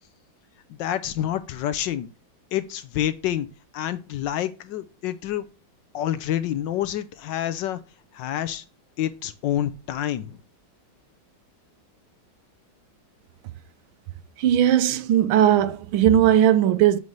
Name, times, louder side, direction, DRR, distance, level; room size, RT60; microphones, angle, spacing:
voice 1, 0.8-2.1 2.5-3.5 3.7-5.5 5.9-7.8 8.1-8.6 9.0-10.4, left 11 dB, 70° left, 1.2 m, -28 dB
voice 2, 14.4-17.0, right 11 dB, 85° right, 1.5 m, -18 dB
7.8 x 5.5 x 3.1 m
omnidirectional pair, 2.2 m